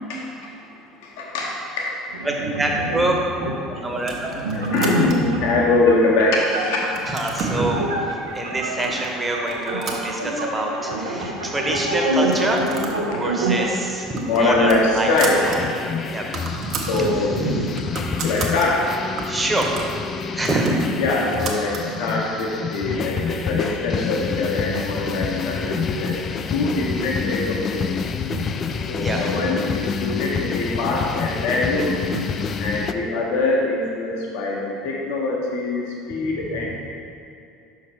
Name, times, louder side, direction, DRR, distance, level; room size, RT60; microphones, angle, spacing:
voice 1, 1.0-2.0 3.9-4.0 4.5-7.0 13.1-13.2 14.2-15.4 16.7-17.5 18.2-18.9 21.0-26.2 26.5-28.0 28.9-32.0 32.6-36.8, left 2 dB, 60° left, -2 dB, 0.9 m, -23 dB
sound 1, 2.1-13.7, right 1 dB, 80° right, 0.7 m, -27 dB
voice 2, 2.2-4.3 7.1-12.7 13.1-15.1 15.5-15.6 16.1-16.3 16.5-18.2 19.3-19.9 20.2-20.8 22.9-23.4 28.2-29.2 32.1-32.2 32.6-32.9, right 1 dB, 15° right, 0 dB, 1.0 m, -26 dB
sound 2, 4.0-5.4 6.0-6.5 6.8-7.6 8.4-8.5 8.8-9.1 9.4-10.7 11.0-11.1 11.3-11.4 12.2-13.1 13.4-13.6 13.9-15.6 15.9-16.0 16.2-17.0 17.5-18.7 19.2-21.9, right 4 dB, 45° right, 0.8 m, -33 dB
sound 3, 15.4-32.9, left 6 dB, 35° left, 0.3 m, -28 dB
5.8 x 4.7 x 4.5 m, 2.6 s
figure-of-eight pair, 65°, 0 cm